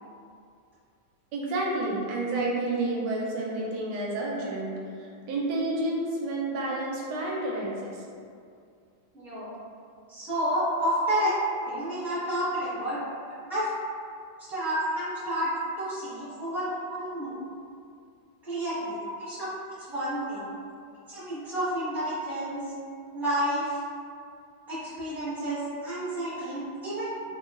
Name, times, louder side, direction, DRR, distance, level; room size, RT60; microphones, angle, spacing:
voice 1, 1.3-8.0 10.8-11.0 16.9-17.0 19.1-19.2 20.3-20.6, right 2 dB, 75° right, -3 dB, 1.1 m, -30 dB
voice 2, 9.1-9.5 10.1-11.3 11.7-13.0 13.5-13.7 14.5-15.5 15.8-16.6 17.0-17.3 18.4-19.4 19.9-20.5 21.1-22.6 23.1-23.8 24.7-27.2, equal, ahead, -14 dB, 0.7 m, -30 dB
3.0 x 2.3 x 2.3 m, 2.3 s
omnidirectional pair, 2.1 m